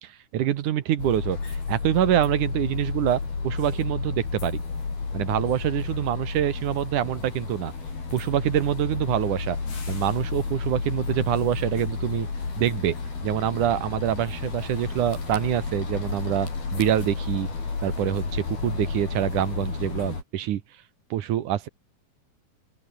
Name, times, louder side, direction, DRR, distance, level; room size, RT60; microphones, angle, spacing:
voice 1, 0.0-4.6 5.1-7.7 8.1-9.6 9.9-12.3 12.6-13.0 13.2-17.5 17.8-20.6 21.1-21.7, right 12 dB, 65° right, 2.5 m, -25 dB
sound 1, 1.0-20.2, left 4 dB, 90° left, 9.5 m, -31 dB
open air
omnidirectional pair, 4.3 m